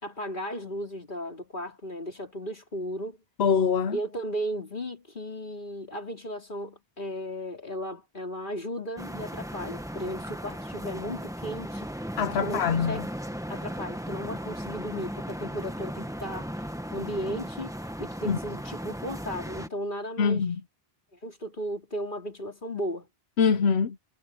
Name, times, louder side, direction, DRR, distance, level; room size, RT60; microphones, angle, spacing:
voice 1, 0.0-3.2 3.9-11.9 12.4-13.1 13.5-16.7 16.9-17.7 18.0-20.4 21.2-23.1, equal, 55° left, 3.8 m, -35 dB
voice 2, 3.4-4.0 12.2-13.0 18.2-18.4 20.2-20.6 23.4-24.0, left 6 dB, 90° left, 1.0 m, -24 dB
sound 1, 9.0-19.7, equal, 5° right, 1.4 m, -36 dB
omnidirectional pair, 1.0 m